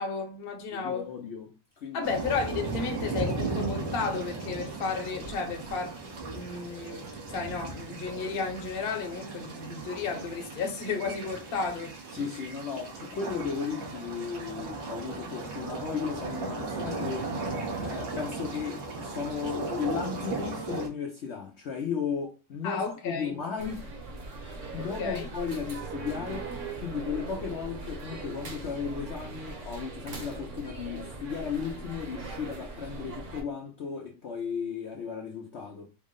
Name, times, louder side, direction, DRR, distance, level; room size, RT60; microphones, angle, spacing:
voice 1, 0.0-1.1 1.9-6.0 6.3-7.0 7.3-11.9 22.6-23.3 24.8-25.3, left 5 dB, 45° left, 0.9 m, -33 dB
voice 2, 0.7-1.5 1.8-2.1 12.1-17.3 17.8-23.9 24.4-35.9, left 6 dB, 75° left, 0.6 m, -35 dB
sound 1, 2.0-20.9, right 3 dB, 90° right, 1.7 m, -36 dB
sound 2, 23.6-33.4, right 3 dB, 50° right, 1.1 m, -40 dB
4.4 x 2.1 x 3.6 m
omnidirectional pair, 1.9 m